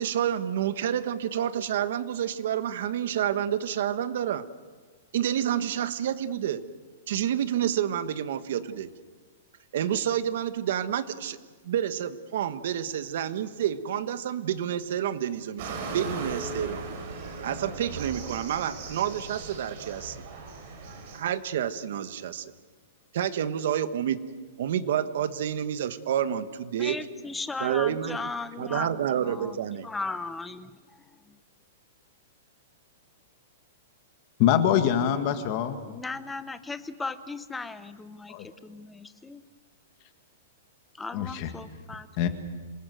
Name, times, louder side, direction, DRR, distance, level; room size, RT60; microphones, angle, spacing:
voice 1, 0.0-4.4 5.1-6.6 7.1-8.9 9.7-11.4 11.6-16.8 17.4-20.2 21.1-22.5 23.1-24.2 24.6-27.0 27.6-28.2 28.6-29.9, right 10 dB, 55° right, 12 dB, 1.3 m, -29 dB
sound 1, 15.6-21.2, right 4 dB, 35° right, 5.6 m, -38 dB
voice 2, 26.8-31.4 35.8-39.5 40.9-42.1, left 3 dB, 5° left, 12 dB, 0.8 m, -37 dB
voice 3, 34.4-35.8 38.3-38.5 41.1-41.5 42.2-42.3, left 9 dB, 30° left, 8 dB, 1.7 m, -24 dB
27.0 x 20.0 x 7.8 m, 1.4 s
hypercardioid pair, 175°, 0 cm